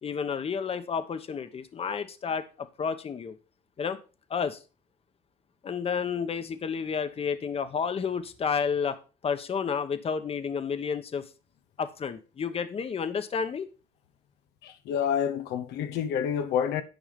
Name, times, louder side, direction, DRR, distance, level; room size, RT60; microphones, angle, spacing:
voice 1, 0.0-3.4 3.8-4.0 4.3-4.6 5.6-9.0 9.2-11.3 11.8-13.7, left 6 dB, 35° left, 1.1 m, -31 dB
voice 2, 14.6-16.8, left 8 dB, 80° left, 0.9 m, -28 dB
10.5 x 5.4 x 5.2 m
cardioid pair, 110°, 17 cm